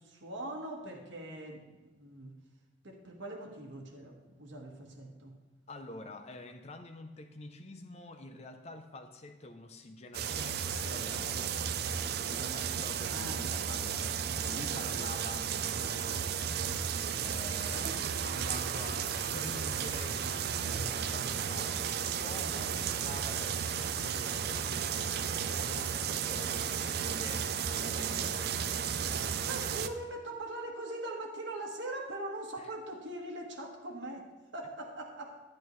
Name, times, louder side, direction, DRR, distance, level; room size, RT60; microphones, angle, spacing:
voice 1, 0.0-2.3 2.8-5.4 13.1-13.4 22.4-22.6 26.2-26.6 29.4-35.4, right 1 dB, 65° right, 1 dB, 1.3 m, -42 dB
voice 2, 5.7-11.6 12.3-16.2 17.2-21.9 22.1-28.5 32.6-32.7, left 2 dB, 30° left, 6 dB, 0.5 m, -47 dB
sound 1, 10.1-29.9, right 7 dB, 50° right, 0.4 m, -34 dB
11.0 x 10.5 x 3.1 m, 1.2 s
head